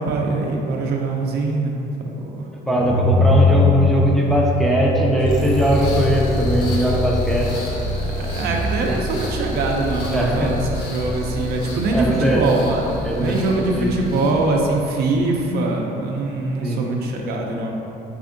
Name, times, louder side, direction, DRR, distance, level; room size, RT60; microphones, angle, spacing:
voice 1, 0.0-3.1 8.1-17.7, right 2 dB, 70° right, 0 dB, 0.5 m, -23 dB
voice 2, 2.7-7.5 8.9-9.0 10.1-10.5 11.9-12.5 13.0-13.3 13.8-13.9 16.6-16.8, equal, ahead, -3 dB, 0.4 m, -20 dB
sound 1, 2.8-9.3, left 2 dB, 40° right, 0.8 m, -22 dB
sound 2, 5.2-15.2, left 1 dB, 70° left, 0.9 m, -28 dB
3.4 x 3.4 x 2.5 m, 2.9 s
cardioid pair, 110°, 17 cm